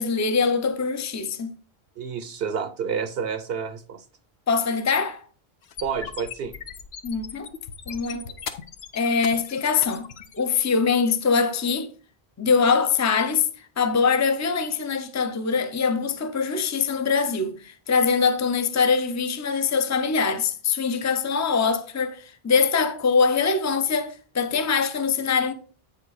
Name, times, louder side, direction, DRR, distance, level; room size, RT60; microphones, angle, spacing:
voice 1, 0.0-1.5 4.5-5.2 7.0-7.5 7.9-8.3 8.9-10.1 10.4-11.9 12.4-13.5 13.8-25.5, left 5 dB, 20° left, 0.5 m, -23 dB
voice 2, 2.0-4.0 5.8-6.5, right 6 dB, 70° right, 0.9 m, -29 dB
sound 1, 5.6-10.6, left 7 dB, 75° left, 1.0 m, -39 dB
8.5 x 5.3 x 4.0 m
omnidirectional pair, 1.1 m